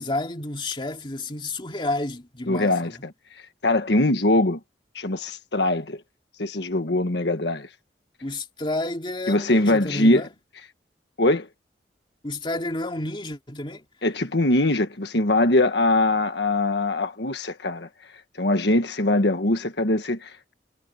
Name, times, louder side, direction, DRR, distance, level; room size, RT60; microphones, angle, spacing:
voice 1, 0.0-2.7 8.2-10.3 12.2-13.8, left 2 dB, 30° left, 2.6 m, -30 dB
voice 2, 2.5-3.1 3.6-4.6 4.9-6.0 6.4-7.7 9.3-10.2 11.2-11.5 14.0-17.9 18.4-20.5, left 2 dB, 75° left, 1.5 m, -22 dB
head